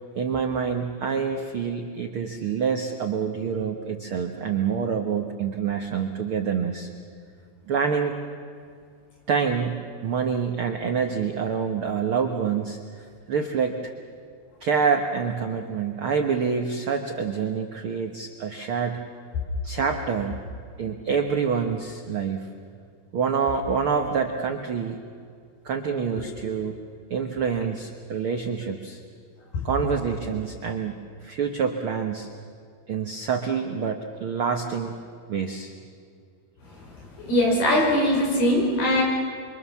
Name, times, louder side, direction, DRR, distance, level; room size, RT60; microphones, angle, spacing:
voice 1, 0.1-6.9 7.7-8.1 9.3-9.7 10.0-13.9 14.6-19.0 19.6-20.4 20.8-22.5 23.1-25.0 25.6-26.7 27.1-29.0 29.6-32.3 32.9-34.9 35.3-35.7, right 6 dB, 85° right, 4 dB, 1.1 m, -27 dB
voice 2, 37.2-39.0, left 1 dB, 85° left, -1 dB, 7.2 m, -21 dB
27.5 x 24.0 x 7.2 m, 2.3 s
omnidirectional pair, 4.4 m